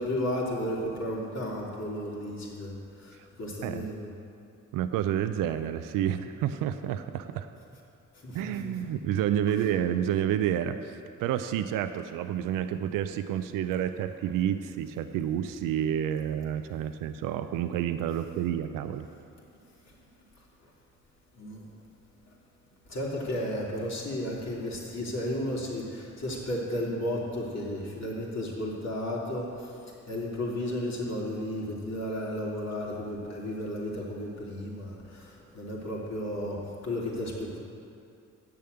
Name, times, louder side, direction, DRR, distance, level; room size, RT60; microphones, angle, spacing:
voice 1, 0.0-4.1 8.2-9.0 21.3-21.7 22.9-37.6, left 1 dB, 55° left, -4 dB, 2.9 m, -33 dB
voice 2, 4.7-7.5 8.3-19.1, right 10 dB, 90° right, 10 dB, 0.5 m, -29 dB
8.7 x 6.9 x 7.8 m, 2.5 s
supercardioid pair, 60°, 32 cm